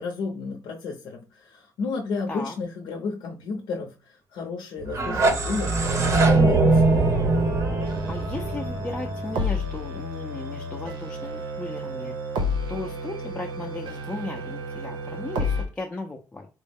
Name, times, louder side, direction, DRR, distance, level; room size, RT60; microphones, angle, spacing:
voice 1, 0.0-6.9, left 4 dB, 90° left, 1 dB, 0.6 m, -32 dB
sound 1, 4.8-9.7, right 3 dB, 40° right, 0.6 m, -22 dB
sound 2, 6.7-15.7, left 1 dB, 90° right, 0.9 m, -31 dB
voice 2, 8.1-12.4 12.7-16.5, left 2 dB, 15° left, 0 dB, 0.3 m, -36 dB
4.4 x 2.0 x 3.5 m, 0.30 s
cardioid pair, 180°, 8 cm